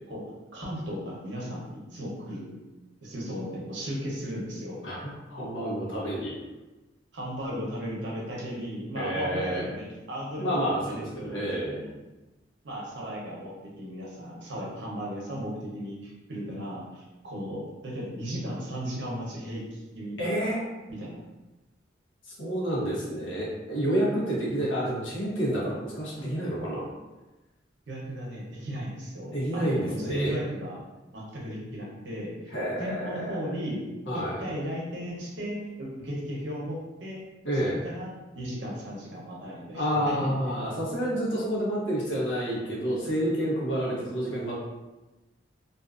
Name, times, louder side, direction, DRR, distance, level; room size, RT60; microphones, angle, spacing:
voice 1, 0.5-2.6 3.0-4.8 7.1-11.9 12.6-20.2 20.9-21.2 27.9-30.8 31.1-33.8 34.1-37.2 37.8-40.3 40.6-40.7, equal, 70° right, -4 dB, 0.7 m, -36 dB
voice 2, 4.8-6.3 8.9-9.6 10.4-11.8 20.2-20.6 22.4-26.9 29.3-30.4 32.5-33.3 34.1-34.4 37.4-37.8 39.7-44.5, equal, 80° left, -6 dB, 0.9 m, -29 dB
2.6 x 2.4 x 2.4 m, 1.1 s
head